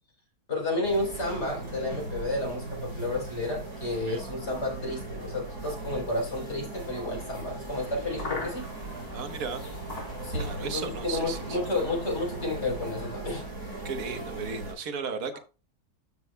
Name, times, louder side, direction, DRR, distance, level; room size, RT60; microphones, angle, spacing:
voice 1, 0.5-8.7 10.2-13.5, left 2 dB, 45° left, 4.5 m, -31 dB
sound 1, 0.8-14.7, right 2 dB, 90° right, 5.1 m, -38 dB
sound 2, 8.1-13.2, left 2 dB, 80° left, 4.2 m, -42 dB
voice 2, 9.1-9.6 10.4-11.8 13.8-15.4, right 5 dB, 65° right, 1.5 m, -35 dB
13.0 x 6.2 x 2.2 m
omnidirectional pair, 1.7 m